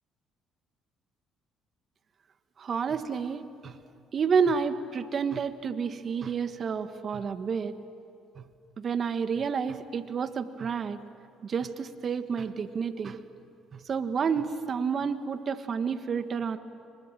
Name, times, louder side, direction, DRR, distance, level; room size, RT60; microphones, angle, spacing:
voice 1, 2.6-3.7 4.1-7.7 8.4-8.5 8.8-11.0 11.4-13.2 13.7-16.6, right 6 dB, 50° right, 10 dB, 1.5 m, -30 dB
29.5 x 24.5 x 7.6 m, 2.6 s
supercardioid pair, 65°, 0 cm